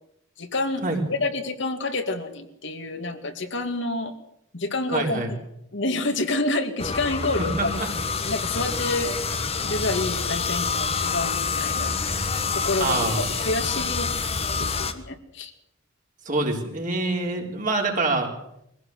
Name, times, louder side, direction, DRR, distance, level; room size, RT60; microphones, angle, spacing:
voice 1, 0.4-4.1 4.5-5.4 5.7-7.8 8.2-9.1 9.6-12.2 12.5-14.1 14.6-15.5, left 2 dB, 55° left, 6 dB, 2.2 m, -28 dB
voice 2, 4.9-5.3 7.6-7.9 12.8-13.3 16.3-18.3, right 2 dB, 40° right, 1 dB, 3.9 m, -25 dB
sound 1, 6.8-14.9, left 5 dB, 30° left, 1.4 m, -27 dB
23.0 x 16.5 x 7.9 m, 0.77 s
head